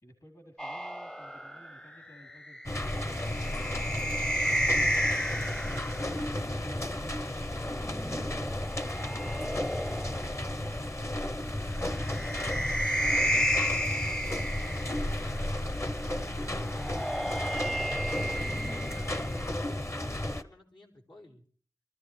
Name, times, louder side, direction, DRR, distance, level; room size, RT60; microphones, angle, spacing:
voice 1, 0.0-3.2 6.6-8.2, equal, 60° left, 3 dB, 3.8 m, -56 dB
sound 1, 0.6-6.1 7.5-10.5 11.8-15.3 16.6-19.5, equal, 10° left, 0.6 m, -32 dB
sound 2, 2.6-20.4, left 1 dB, 40° left, 0.9 m, -33 dB
voice 2, 14.6-17.4 17.9-21.4, left 2 dB, 85° left, -3 dB, 3.9 m, -53 dB
25.5 x 14.5 x 3.4 m, 0.44 s
wide cardioid pair, 60°, 8 cm